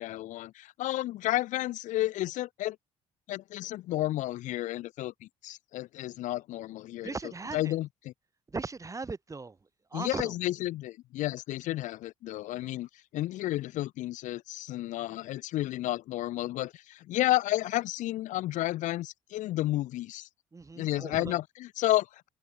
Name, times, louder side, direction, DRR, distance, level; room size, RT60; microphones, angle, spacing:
voice 1, 0.0-2.8 3.3-7.1 7.5-8.1 9.9-20.3 20.8-22.3, left 15 dB, 80° left, 4.8 m, -32 dB
voice 2, 7.0-7.8 8.5-9.6 9.9-10.3 20.5-21.4, right 4 dB, 25° right, 3.2 m, -38 dB
open air
supercardioid pair, 80°, 13 cm